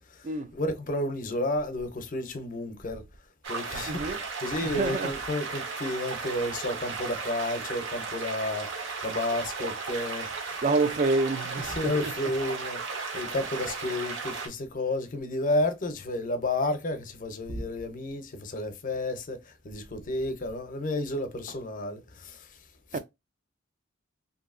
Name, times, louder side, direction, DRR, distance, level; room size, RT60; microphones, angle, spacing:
voice 1, 0.1-3.1 3.5-10.6 11.6-23.0, left 1 dB, 40° left, 0.5 m, -32 dB
sound 1, 3.4-14.5, right 4 dB, 65° right, 0.7 m, -35 dB
voice 2, 3.8-4.2 4.6-5.1 10.6-12.1 22.9-23.0, right 3 dB, 40° right, 0.3 m, -27 dB
2.6 x 2.6 x 2.5 m
head